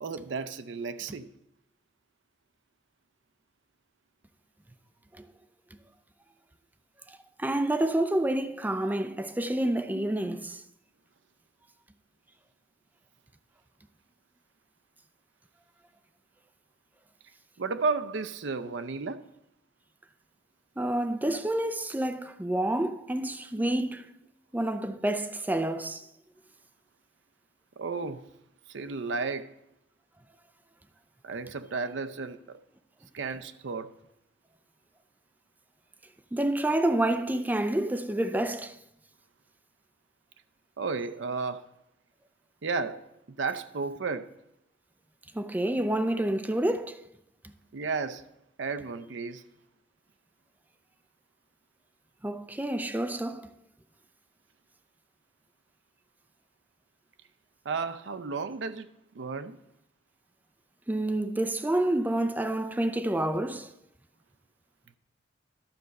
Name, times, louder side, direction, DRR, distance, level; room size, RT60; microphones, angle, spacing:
voice 1, 0.0-1.3 10.0-10.1 17.6-19.2 23.6-23.7 27.8-28.3 28.7-29.5 31.2-32.6 33.1-33.9 37.8-37.9 40.8-41.7 42.6-44.3 47.7-48.3 48.6-49.4 57.6-58.9 59.1-59.6, right 4 dB, 70° right, 0.5 m, -33 dB
voice 2, 7.1-10.6 20.8-24.1 24.5-26.1 36.3-38.8 45.3-47.0 52.2-53.5 60.9-63.7, right 1 dB, 10° right, 0.4 m, -28 dB
12.0 x 4.1 x 6.4 m
head